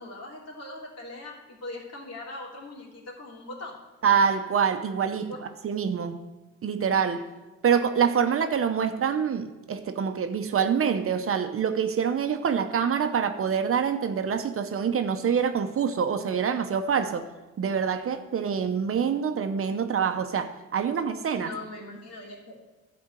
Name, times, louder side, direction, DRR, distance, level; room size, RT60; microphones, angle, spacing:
voice 1, 0.0-3.8 5.2-5.4 21.4-22.6, left 2 dB, 55° left, 3.0 m, -40 dB
voice 2, 4.0-5.3 5.6-6.3 6.6-7.3 7.6-17.3 17.6-21.5, right 7 dB, 45° right, 0.9 m, -26 dB
12.0 x 4.3 x 8.1 m
cardioid pair, 90°, 30 cm